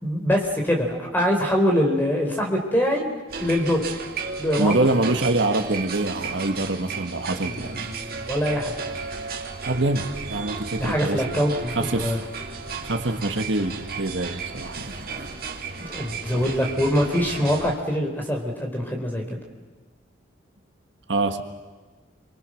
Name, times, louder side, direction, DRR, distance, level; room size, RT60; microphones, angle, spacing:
voice 1, 0.0-3.1 3.4-3.8 4.4-4.8 7.4-8.7 10.8-12.2 15.8-19.4, equal, 10° left, 1 dB, 4.0 m, -24 dB
sound 1, 3.3-17.8, right 4 dB, 50° right, 2.3 m, -34 dB
voice 2, 4.6-7.9 9.6-11.4 11.7-12.2 12.8-14.9 16.3-16.5 21.1-21.4, right 2 dB, 70° right, 7 dB, 1.5 m, -25 dB
29.5 x 24.0 x 6.4 m, 1.3 s
head